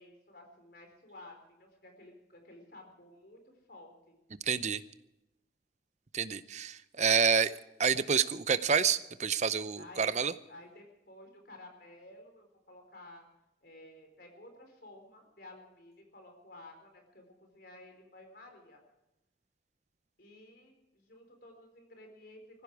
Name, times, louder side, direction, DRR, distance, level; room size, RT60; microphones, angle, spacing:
voice 1, 0.0-3.4 3.7-4.1 9.8-10.2 10.5-13.3 13.6-18.8 20.2-22.6, left 1 dB, 55° left, 4 dB, 4.5 m, -53 dB
voice 2, 4.5-4.8 6.1-7.5 7.8-10.3, right 6 dB, 40° right, 14 dB, 0.7 m, -28 dB
19.5 x 15.5 x 4.8 m, 0.92 s
head